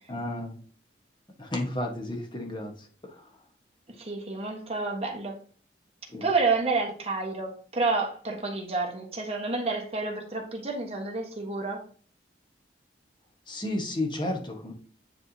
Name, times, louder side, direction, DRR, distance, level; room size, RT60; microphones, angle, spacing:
voice 1, 0.1-0.6 1.4-2.7 6.1-6.3 13.5-14.7, left 1 dB, 25° left, 2 dB, 1.3 m, -32 dB
voice 2, 4.0-5.4 6.2-11.8, right 3 dB, 35° right, 0 dB, 1.3 m, -29 dB
9.5 x 3.5 x 2.8 m, 0.43 s
head